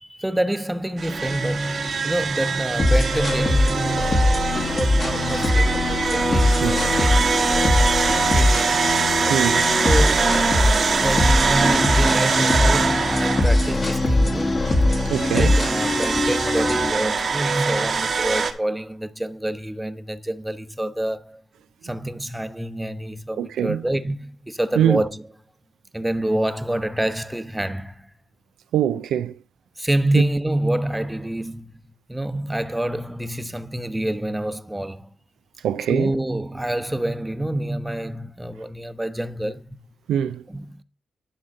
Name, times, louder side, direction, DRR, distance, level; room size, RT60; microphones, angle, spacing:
voice 1, 0.0-4.2 4.7-8.8 9.8-10.4 11.0-14.7 15.3-21.4 21.8-25.2 25.9-28.1 29.8-31.7 32.1-35.1 35.9-39.8 40.5-40.8, right 1 dB, 10° right, 0.9 m, -27 dB
sound 1, 1.0-18.5, right 5 dB, 60° right, 1.2 m, -23 dB
sound 2, 2.8-16.9, left 2 dB, 45° left, 1.6 m, -21 dB
voice 2, 9.3-9.7 15.1-15.6 23.4-23.8 24.8-25.0 28.7-29.3 35.6-36.1 40.1-40.4, right 10 dB, 80° right, 0.4 m, -23 dB
10.0 x 3.7 x 6.4 m
supercardioid pair, 45°, 0 cm